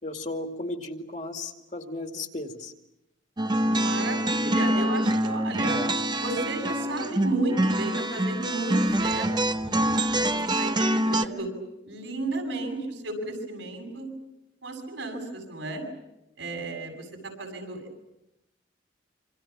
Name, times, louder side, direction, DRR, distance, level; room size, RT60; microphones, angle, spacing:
voice 1, 0.0-2.7, left 2 dB, 40° left, 5 dB, 2.2 m, -35 dB
sound 1, 3.4-11.2, right 1 dB, 25° right, 0.9 m, -25 dB
voice 2, 3.6-5.8 6.2-9.3 9.7-11.5 11.9-14.1 14.6-15.8 16.4-17.0 17.4-18.1, right 2 dB, 80° right, 3 dB, 7.7 m, -33 dB
27.0 x 26.5 x 7.3 m, 0.90 s
head